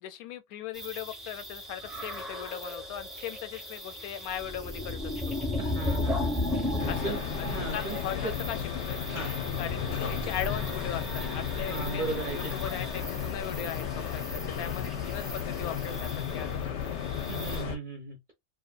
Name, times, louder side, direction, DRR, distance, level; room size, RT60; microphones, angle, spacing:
voice 1, 0.0-5.1 6.9-9.0 9.6-16.9, left 10 dB, 90° left, 1.1 m, -39 dB
sound 1, 0.7-17.6, left 2 dB, ahead, 0.5 m, -36 dB
voice 2, 5.6-6.4 7.0-8.0 8.2-8.3 9.1-9.3 11.7-12.5 17.3-18.2, right 4 dB, 50° right, 0.6 m, -36 dB
sound 2, 6.8-17.8, left 7 dB, 65° left, 0.8 m, -34 dB
2.8 x 2.3 x 2.2 m
omnidirectional pair, 1.5 m